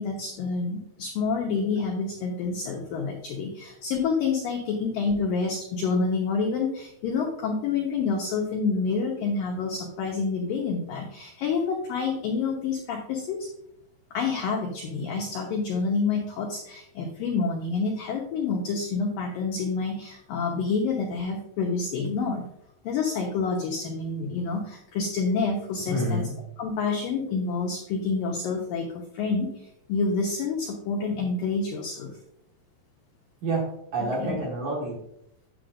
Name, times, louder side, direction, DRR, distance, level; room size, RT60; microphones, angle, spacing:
voice 1, 0.0-13.5 14.1-22.5 22.8-26.2 26.6-32.1 34.2-34.4, left 4 dB, 80° left, 0 dB, 2.0 m, -28 dB
voice 2, 25.9-26.3 33.4-35.0, right 1 dB, 60° right, -3 dB, 2.2 m, -28 dB
9.7 x 7.8 x 2.5 m, 0.77 s
omnidirectional pair, 5.3 m